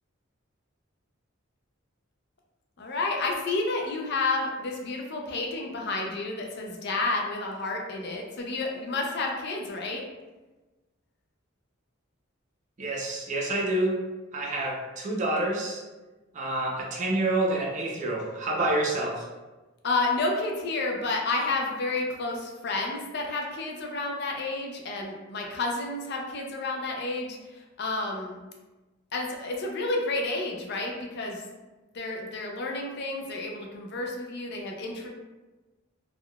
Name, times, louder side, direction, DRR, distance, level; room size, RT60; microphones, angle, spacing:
voice 1, 2.8-10.0 19.8-28.4 29.1-31.4 31.9-35.1, left 2 dB, 55° left, 0 dB, 0.5 m, -30 dB
voice 2, 12.8-14.0 14.3-15.8 16.3-19.3, right 2 dB, 35° right, -1 dB, 0.5 m, -28 dB
3.4 x 2.3 x 2.2 m, 1.2 s
head